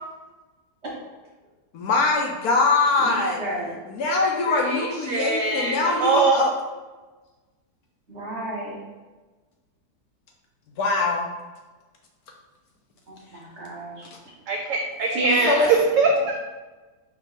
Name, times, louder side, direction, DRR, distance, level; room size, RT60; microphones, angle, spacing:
voice 1, 1.7-3.4 3.9-6.5 10.8-11.3 15.5-15.7, left 3 dB, 70° left, 1 dB, 1.0 m, -22 dB
voice 2, 3.0-3.7 8.1-8.7 13.1-14.1 15.1-15.7 16.1-16.3, right 1 dB, 45° right, -5 dB, 1.4 m, -31 dB
voice 3, 4.5-6.4 14.5-16.3, right 4 dB, 75° right, 0 dB, 0.7 m, -23 dB
4.5 x 2.8 x 4.0 m, 1.3 s
omnidirectional pair, 1.8 m